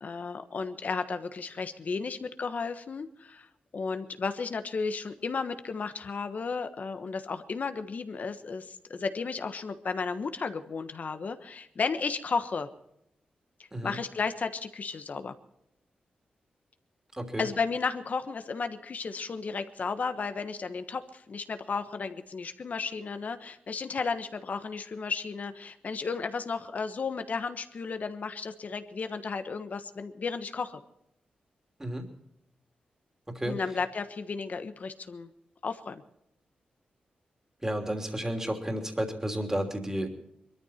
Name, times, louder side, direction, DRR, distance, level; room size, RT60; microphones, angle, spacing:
voice 1, 0.0-3.5 3.7-12.7 13.8-15.3 17.4-30.8 33.4-35.3 35.6-36.0, left 4 dB, 55° left, 9 dB, 1.3 m, -33 dB
voice 2, 17.1-17.5 31.8-32.1 33.3-33.6 37.6-40.1, right 1 dB, 15° right, 4 dB, 3.2 m, -32 dB
22.0 x 13.5 x 4.4 m, 0.80 s
cardioid pair, 70°, 3 cm